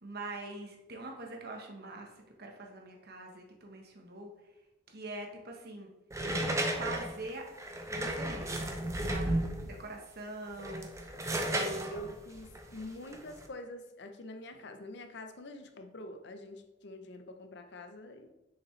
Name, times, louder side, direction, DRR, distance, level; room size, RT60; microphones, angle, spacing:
voice 1, 0.0-2.1 2.4-4.3 4.9-5.9 6.6-7.5 7.9-9.4 9.6-12.0 12.6-12.7, right 2 dB, 60° right, 2 dB, 1.2 m, -43 dB
sound 1, 6.1-9.8 10.5-13.4, right 1 dB, 15° right, 0.7 m, -34 dB
voice 2, 11.9-18.3, left 1 dB, 65° left, 7 dB, 0.7 m, -46 dB
6.7 x 5.1 x 3.2 m, 0.97 s
head